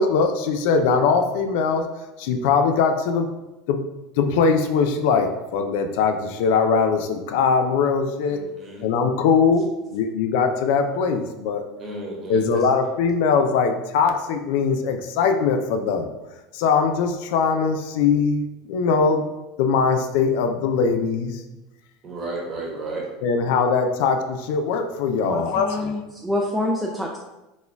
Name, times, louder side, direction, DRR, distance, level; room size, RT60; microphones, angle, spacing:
voice 1, 0.0-1.8 2.2-3.3 3.7-3.8 4.2-8.4 8.8-9.6 9.9-11.6 12.3-16.1 16.5-19.2 19.6-21.4 23.2-25.9, left 5 dB, 75° left, 6 dB, 0.4 m, -21 dB
voice 2, 8.2-8.8 11.8-12.4 22.0-23.1, right 2 dB, 35° right, -2 dB, 1.1 m, -33 dB
voice 3, 25.2-27.2, left 1 dB, 5° right, -1 dB, 0.4 m, -26 dB
4.1 x 2.3 x 3.4 m, 1.0 s
supercardioid pair, 115°, 0 cm